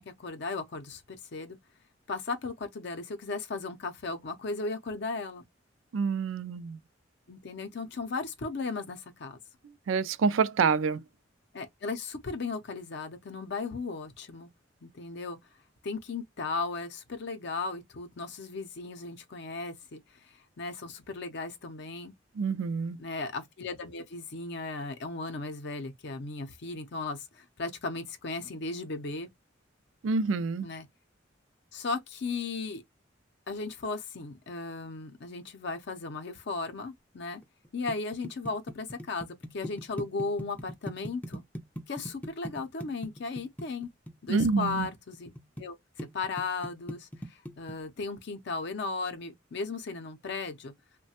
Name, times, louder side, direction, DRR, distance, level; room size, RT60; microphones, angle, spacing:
voice 1, 0.0-1.6 2.1-5.4 7.3-9.4 11.5-14.5 14.8-15.4 15.8-22.1 23.0-29.3 30.6-30.9 31.7-32.8 33.5-37.4 37.7-41.4 41.9-43.9 44.2-45.3 45.6-50.7, left 3 dB, 60° left, 0.5 m, -36 dB
voice 2, 5.9-6.8 9.9-11.0 22.4-23.0 30.0-30.7 44.3-44.9, right 5 dB, 85° right, 0.4 m, -27 dB
sound 1, 37.4-45.6 46.0-47.7, equal, 10° left, 0.4 m, -39 dB
3.1 x 2.1 x 2.8 m
head